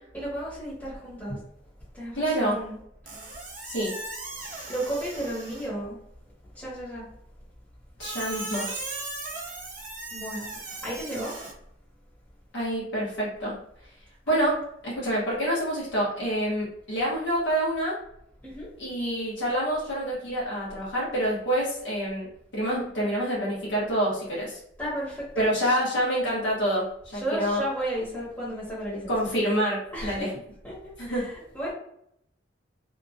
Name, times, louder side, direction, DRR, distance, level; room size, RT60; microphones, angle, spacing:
voice 1, 0.1-1.4 1.9-2.8 4.7-6.0 6.5-7.0 10.1-10.5 10.8-11.3 14.3-14.6 18.4-18.7 24.8-25.4 27.1-29.1 29.9-30.3 30.6-30.7 31.0-31.7, right 1 dB, 10° left, -8 dB, 0.9 m, -33 dB
voice 2, 2.1-2.5 3.6-3.9 8.0-8.7 12.5-13.5 14.3-14.5 14.8-17.9 18.8-22.3 22.5-24.6 25.3-26.8 27.1-27.6 29.1-30.3 31.0-31.2, equal, 85° left, -7 dB, 1.1 m, -27 dB
Squeak, 3.1-5.8 8.0-11.5, right 2 dB, 45° right, 0.6 m, -37 dB
2.8 x 2.3 x 2.5 m, 0.73 s
head